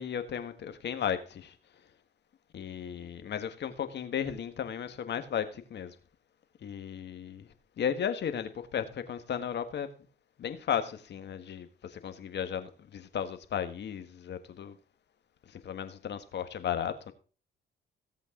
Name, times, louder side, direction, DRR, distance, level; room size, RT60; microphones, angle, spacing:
voice 1, 0.0-1.5 2.5-5.9 6.6-7.5 7.8-9.9 10.4-11.7 11.9-14.7 15.6-17.1, left 8 dB, 60° left, 1.6 m, -35 dB
17.0 x 7.9 x 3.8 m
cardioid pair, 90°, 20 cm